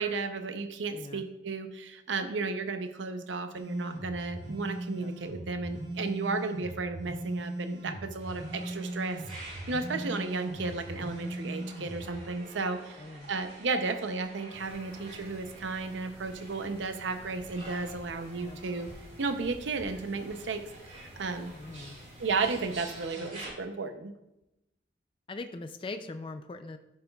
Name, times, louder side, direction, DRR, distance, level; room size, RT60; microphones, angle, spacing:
voice 1, 0.0-13.0 13.3-18.9 19.2-20.6 20.9-21.5 22.2-24.1, right 4 dB, 80° right, 8 dB, 0.6 m, -33 dB
voice 2, 0.9-1.2 4.9-5.1 9.8-10.1 13.0-13.3 18.4-18.6 21.5-22.0 23.2-23.3 25.3-26.8, left 3 dB, 30° left, 9 dB, 0.4 m, -42 dB
sound 1, 3.6-12.1, right 1 dB, 65° right, 1.0 m, -39 dB
sound 2, 8.2-23.5, right 1 dB, 40° right, 3.2 m, -49 dB
sound 3, 14.5-23.1, equal, 15° right, 2.4 m, -52 dB
11.0 x 7.7 x 2.3 m, 0.91 s
head